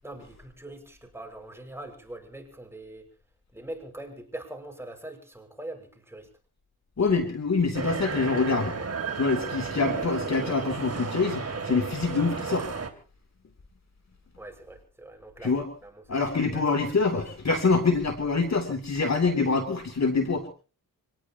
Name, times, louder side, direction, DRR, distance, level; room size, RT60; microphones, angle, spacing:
voice 1, 0.0-3.1 3.5-6.3 14.4-16.3 16.5-16.7, right 1 dB, 5° right, 4 dB, 5.8 m, -42 dB
voice 2, 7.0-8.8 9.2-12.7 15.4-15.7 16.1-20.5, left 4 dB, 45° left, 5 dB, 3.1 m, -25 dB
sound 1, 7.7-12.9, right 5 dB, 40° right, 2.8 m, -33 dB
25.5 x 19.0 x 3.0 m, 0.37 s
cardioid pair, 65°, 38 cm